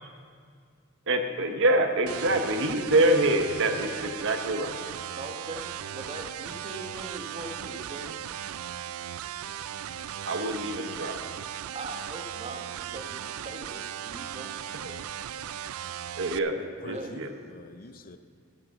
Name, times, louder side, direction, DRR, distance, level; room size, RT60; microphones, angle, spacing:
voice 1, 1.1-4.7 10.3-11.2 14.8-14.9 16.2-16.5 16.8-17.3, right 1 dB, 65° right, 1.0 m, -25 dB
sound 1, 2.1-16.4, right 10 dB, 80° right, 0.4 m, -37 dB
voice 2, 5.2-8.2 11.7-14.5 16.9-17.2, right 2 dB, 30° right, 1.1 m, -41 dB
voice 3, 16.5-18.2, left 3 dB, 40° left, 0.5 m, -45 dB
14.5 x 6.5 x 6.9 m
head